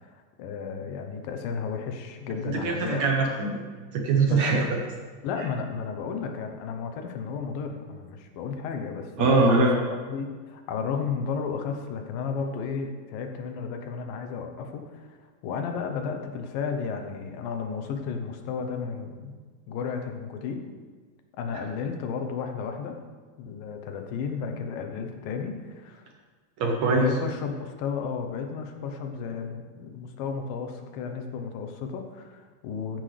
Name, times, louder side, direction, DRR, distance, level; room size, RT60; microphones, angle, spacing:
voice 1, 0.4-3.0 4.2-4.7 5.2-15.2 15.4-19.3 19.7-20.6 21.4-23.0 23.4-26.1 26.9-33.0, left 6 dB, 80° left, 5 dB, 2.7 m, -33 dB
voice 2, 2.4-3.6 3.9-4.7 9.2-9.8 26.6-27.1, right 3 dB, 65° right, 1 dB, 2.0 m, -22 dB
14.5 x 10.0 x 3.4 m, 1.5 s
omnidirectional pair, 4.0 m